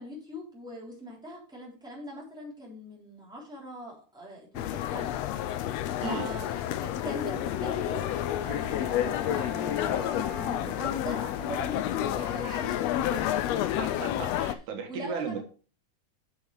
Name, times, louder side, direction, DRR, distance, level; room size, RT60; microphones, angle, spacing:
voice 1, 0.0-5.1 5.5-5.7 6.0-6.5 6.8-13.6 14.3-14.4 14.9-15.4, equal, ahead, -4 dB, 3.1 m, -41 dB
sound 1, 4.6-14.6, left 12 dB, 80° left, 1.6 m, -30 dB
Bowed string instrument, 7.3-11.4, left 3 dB, 30° right, 2.3 m, -44 dB
voice 2, 13.7-15.4, right 5 dB, 85° right, 4 dB, 2.8 m, -36 dB
7.1 x 6.2 x 4.8 m, 0.37 s
omnidirectional pair, 3.4 m